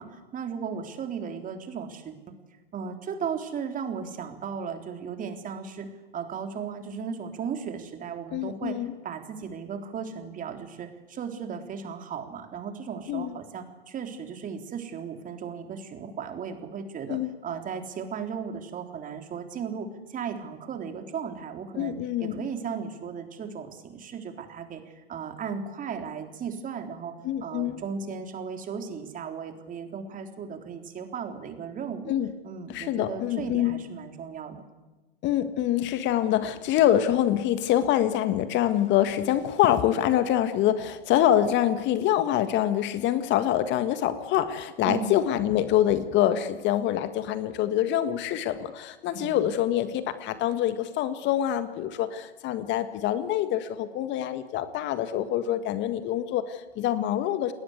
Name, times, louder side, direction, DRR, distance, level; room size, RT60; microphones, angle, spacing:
voice 1, 0.0-2.1 2.7-5.9 6.1-8.8 9.0-21.9 22.2-27.1 27.4-32.1 32.4-34.6 44.8-45.1 49.2-49.5, right 6 dB, 25° right, 5 dB, 3.8 m, -36 dB
voice 2, 8.3-8.9 13.1-13.3 17.1-17.4 21.8-22.4 27.2-27.8 32.1-32.3 32.7-33.8 35.2-57.5, left 11 dB, 40° left, 11 dB, 1.8 m, -25 dB
30.0 x 20.5 x 8.2 m, 1.2 s
hypercardioid pair, 100°, 30 cm